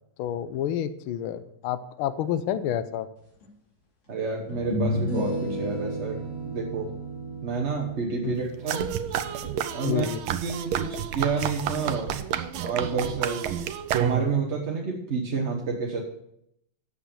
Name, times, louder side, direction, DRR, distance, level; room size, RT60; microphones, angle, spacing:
voice 1, 0.2-3.1 8.2-8.4 9.8-10.2, left 10 dB, 80° left, 12 dB, 1.5 m, -29 dB
sound 1, 3.4-3.5 4.5-9.8, equal, 60° left, 4.0 m, -33 dB
voice 2, 4.1-6.2 6.4-6.9 7.4-8.9 9.7-10.1 10.4-12.1 12.6-13.4 14.0-16.0, right 5 dB, 40° right, -1 dB, 1.2 m, -29 dB
sound 2, 8.7-14.5, right 9 dB, 75° right, 1.5 m, -30 dB
8.9 x 7.3 x 6.8 m, 0.76 s
omnidirectional pair, 2.3 m